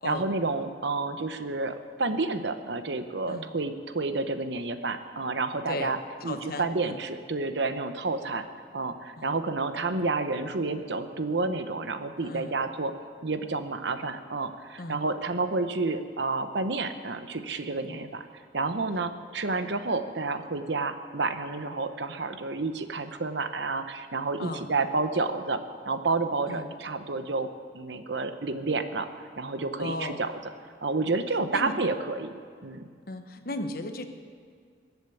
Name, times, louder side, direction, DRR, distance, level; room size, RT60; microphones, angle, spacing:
voice 1, 0.0-6.0 6.2-8.5 8.7-12.9 13.2-18.2 18.5-27.5 27.7-29.1 29.4-30.3 30.8-32.8, right 3 dB, 70° right, 9 dB, 0.9 m, -30 dB
voice 2, 6.2-7.0 9.2-9.4 12.2-12.6 14.8-15.0 17.8-18.0 24.4-24.7 26.5-26.7 29.8-30.2 31.5-31.8 33.1-34.0, left 2 dB, 50° left, 7 dB, 1.1 m, -36 dB
22.5 x 8.2 x 6.9 m, 2.1 s
head